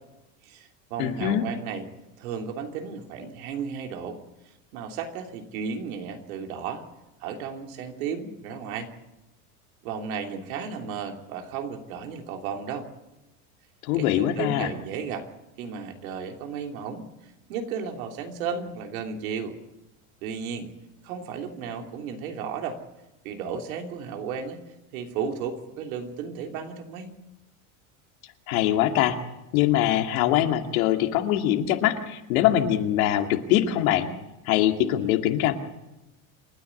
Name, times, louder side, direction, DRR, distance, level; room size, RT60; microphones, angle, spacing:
voice 1, 0.4-1.9 2.2-4.2 4.7-6.8 7.2-8.9 9.8-12.9 13.9-15.3 15.6-19.5 20.2-20.7 21.0-22.8 23.2-24.6 24.9-27.1, right 6 dB, 85° right, 4 dB, 3.1 m, -34 dB
voice 2, 1.0-1.4 13.8-14.7 28.5-29.2 29.5-34.1 34.5-35.5, left 12 dB, 80° left, 5 dB, 2.5 m, -23 dB
28.0 x 9.9 x 9.6 m, 0.98 s
supercardioid pair, 140°, 41 cm